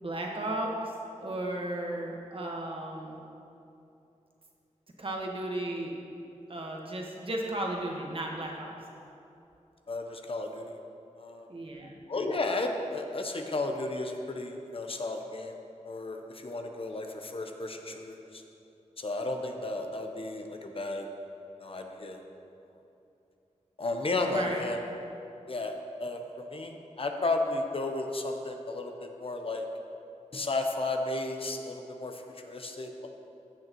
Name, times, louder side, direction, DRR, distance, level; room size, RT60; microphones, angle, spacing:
voice 1, 0.0-3.2 5.0-5.9 6.5-8.7 11.5-11.9 24.2-24.6, right 1 dB, 45° right, 0 dB, 1.3 m, -34 dB
voice 2, 9.9-10.8 11.2-11.5 12.1-18.4 19.0-21.1 21.6-22.2 23.8-24.8 25.5-29.6 30.3-33.1, left 2 dB, 50° left, 4 dB, 0.8 m, -33 dB
15.0 x 6.6 x 3.0 m, 2.8 s
wide cardioid pair, 75°, 12 cm